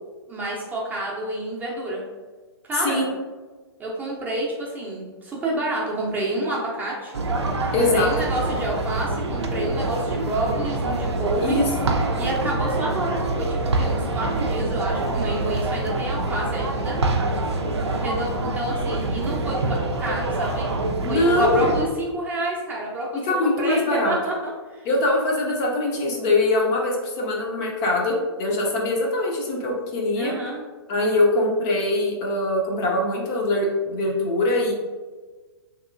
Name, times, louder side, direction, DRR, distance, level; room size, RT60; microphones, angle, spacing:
voice 1, 0.3-2.0 2.6-3.0 3.8-7.1 7.7-11.6 12.2-17.0 17.9-20.7 21.1-24.9 30.1-30.6, right 1 dB, 10° right, -4 dB, 0.6 m, -28 dB
sound 1, 7.1-21.8, right 2 dB, 80° right, 0.5 m, -25 dB
voice 2, 7.7-8.1 11.4-11.9 21.0-21.6 23.2-24.2 24.8-30.3 30.9-34.7, left 2 dB, 35° left, -1 dB, 0.6 m, -22 dB
2.9 x 2.9 x 2.5 m, 1.3 s
figure-of-eight pair, 120°, 14 cm